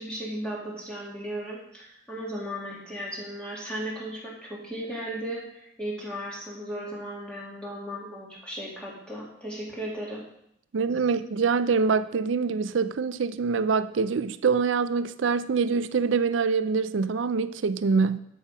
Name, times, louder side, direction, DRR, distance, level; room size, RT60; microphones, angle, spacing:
voice 1, 0.0-10.2, equal, 5° left, 2.1 m, -36 dB
voice 2, 10.7-18.2, right 5 dB, 75° right, 0.4 m, -25 dB
12.5 x 5.7 x 5.0 m
head